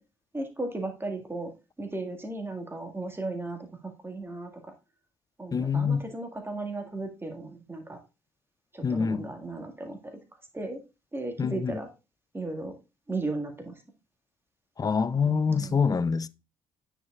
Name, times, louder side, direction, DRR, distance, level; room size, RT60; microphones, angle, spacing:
voice 1, 0.3-4.7 5.4-8.0 8.7-10.2 10.5-10.8 11.1-11.9 12.3-12.8 13.1-13.8 15.2-15.8, right 2 dB, 15° right, 2.0 m, -36 dB
voice 2, 5.5-6.0 8.8-9.3 11.4-11.7 14.8-16.3, left 5 dB, 25° left, 0.5 m, -25 dB
9.2 x 5.7 x 2.5 m
figure-of-eight pair, 50°, 15 cm